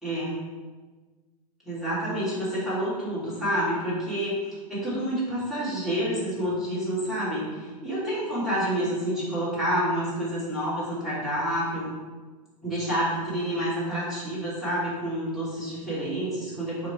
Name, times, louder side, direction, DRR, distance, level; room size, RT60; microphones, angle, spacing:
voice 1, 0.0-0.4 1.6-11.9 12.6-16.9, equal, ahead, -10 dB, 1.2 m, -28 dB
2.9 x 2.2 x 4.1 m, 1.4 s
supercardioid pair, 140°, 20 cm